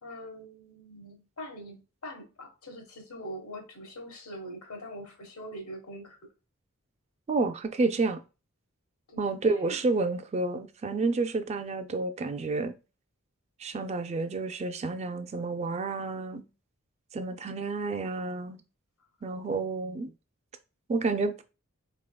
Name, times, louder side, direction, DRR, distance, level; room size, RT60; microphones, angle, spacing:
voice 1, 0.0-6.2 9.1-9.2, equal, 80° left, 1.2 m, -43 dB
voice 2, 7.3-8.2 9.2-12.7 13.6-16.4 17.1-18.6 19.2-20.1 20.9-21.4, right 3 dB, 30° right, 0.3 m, -30 dB
4.0 x 3.5 x 2.2 m
head